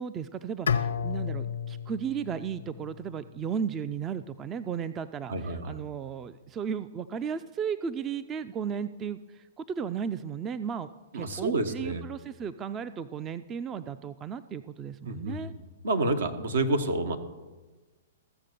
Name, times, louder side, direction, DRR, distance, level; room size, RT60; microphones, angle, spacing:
voice 1, 0.0-15.5, right 7 dB, 25° right, 13 dB, 0.4 m, -35 dB
Bowed string instrument, 0.7-3.7, left 7 dB, 80° left, 0.6 m, -32 dB
voice 2, 5.3-5.9 11.1-12.0 15.1-15.6 15.8-17.2, right 2 dB, 75° right, 7 dB, 1.3 m, -29 dB
15.0 x 6.8 x 6.7 m, 1.2 s
hypercardioid pair, 120°, 0 cm